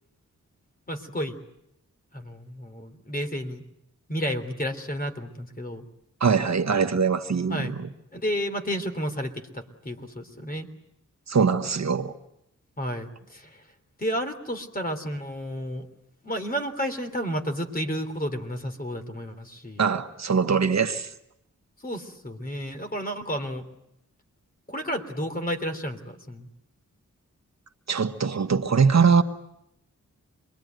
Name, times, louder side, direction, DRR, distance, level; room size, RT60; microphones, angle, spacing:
voice 1, 0.9-1.4 2.1-3.6 4.1-5.8 7.5-7.7 8.1-10.7 12.8-13.6 14.0-15.9 16.2-19.8 21.8-23.7 24.7-26.5, equal, 30° left, 3.3 m, -31 dB
voice 2, 6.2-7.9 11.3-12.1 19.8-21.1 27.9-29.2, right 5 dB, 60° right, 1.4 m, -22 dB
27.0 x 22.0 x 9.3 m
wide cardioid pair, 110°, 31 cm